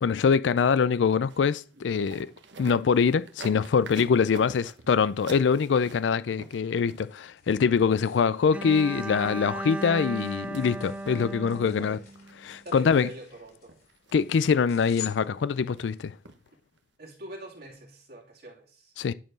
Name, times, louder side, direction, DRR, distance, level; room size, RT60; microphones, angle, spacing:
voice 1, 0.0-2.3 2.6-12.0 12.4-13.1 14.1-16.1 19.0-19.1, left 6 dB, 85° left, 0.4 m, -24 dB
sound 1, 1.3-7.3 8.8-8.9 9.2-10.6 11.1-11.6 11.9-12.3 12.8-13.1 13.5-14.1 14.5-15.0 15.4-15.8 16.3-16.5 16.8-16.9, right 3 dB, 80° right, 1.2 m, -47 dB
sound 2, 6.5-16.0, left 11 dB, 60° left, 4.2 m, -49 dB
Bowed string instrument, 8.5-12.6, right 2 dB, 10° right, 0.4 m, -36 dB
voice 2, 12.6-13.7 17.0-18.9, right 1 dB, 60° right, 2.8 m, -44 dB
11.0 x 4.5 x 6.2 m
head